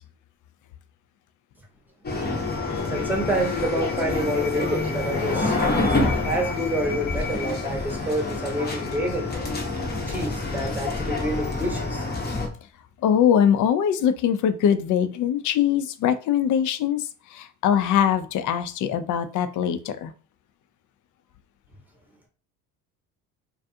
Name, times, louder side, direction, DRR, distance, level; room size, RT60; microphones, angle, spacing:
sound 1, 2.0-12.5, left 3 dB, 25° left, 0.8 m, -27 dB
voice 1, 2.7-9.2 10.1-12.0, right 1 dB, 5° right, 1 dB, 0.9 m, -28 dB
voice 2, 13.0-20.1, left 9 dB, 45° left, 11 dB, 0.4 m, -22 dB
2.4 x 2.3 x 2.6 m, 0.37 s
hypercardioid pair, 60°, 43 cm